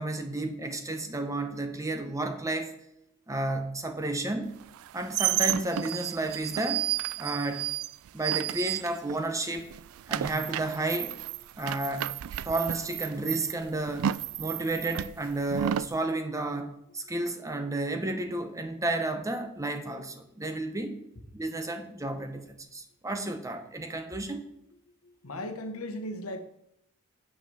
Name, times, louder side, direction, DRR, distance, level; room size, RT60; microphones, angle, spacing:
voice 1, 0.0-2.7 3.3-4.5 4.9-6.9 7.2-7.7 8.1-9.7 10.1-11.2 11.6-12.2 12.4-14.1 14.4-20.9 21.3-24.4, right 2 dB, 15° right, 0.8 m, -32 dB
sound 1, 4.7-9.3 9.6-16.0, right 12 dB, 70° right, 0.3 m, -32 dB
voice 2, 25.0-26.4, left 1 dB, 70° left, 1.1 m, -38 dB
7.8 x 6.0 x 6.7 m
head